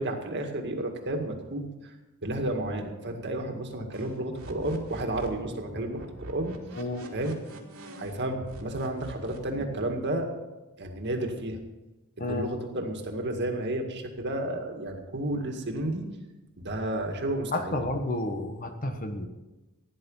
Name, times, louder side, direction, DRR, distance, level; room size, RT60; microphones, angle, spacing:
voice 1, 0.0-1.9 2.2-6.6 7.1-7.4 8.0-10.3 10.8-11.6 12.2-16.1 16.6-17.7, right 1 dB, 50° right, 3 dB, 2.1 m, -32 dB
sound 1, 3.9-8.2 8.5-9.9, right 1 dB, 85° right, 2.7 m, -44 dB
voice 2, 17.5-19.3, left 1 dB, 40° left, 6 dB, 1.4 m, -31 dB
16.5 x 10.5 x 5.6 m, 1.1 s
head